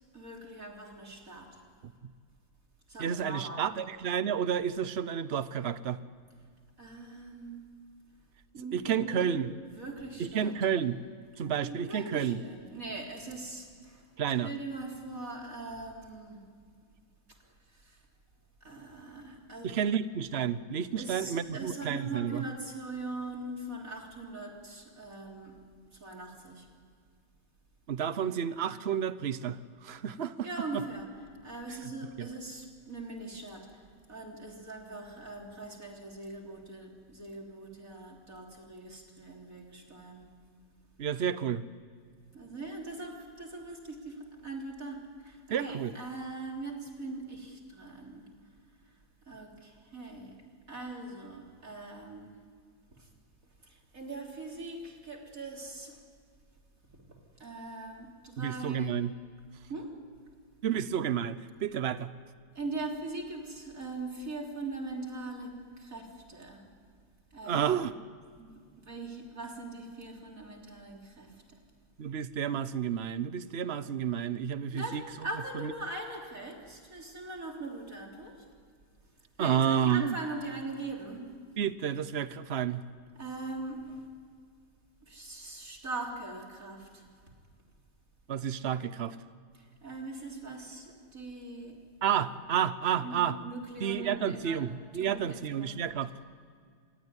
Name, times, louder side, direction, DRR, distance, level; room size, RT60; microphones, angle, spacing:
voice 1, 0.1-1.6 2.9-3.6 6.8-7.7 8.5-9.4 9.7-10.5 11.6-14.1 14.4-16.4 17.7-18.0 18.6-19.9 21.0-25.6 25.9-26.7 30.4-31.1 31.4-33.8 34.1-40.3 42.3-48.3 49.3-50.4 50.7-52.3 53.0-53.1 53.6-56.0 57.1-59.0 59.7-59.9 62.6-66.6 67.3-67.9 68.4-68.5 68.8-71.6 74.7-78.4 79.4-81.3 83.2-84.0 85.1-87.1 89.5-91.8 93.0-94.7 95.0-95.9, right 2 dB, 40° right, 0 dB, 4.0 m, -41 dB
voice 2, 3.0-6.0 8.7-9.5 10.2-11.0 11.4-12.4 14.2-14.5 19.6-22.4 27.9-30.5 30.7-30.8 31.7-31.8 32.2-32.3 41.0-41.6 45.5-45.9 58.4-59.1 60.6-62.1 67.5-67.9 72.0-75.0 75.5-75.7 79.4-80.1 81.6-82.8 88.3-89.2 92.0-93.4 93.8-96.1, right 8 dB, 70° right, 14 dB, 0.6 m, -30 dB
27.0 x 22.0 x 9.8 m, 2.1 s
omnidirectional pair, 2.2 m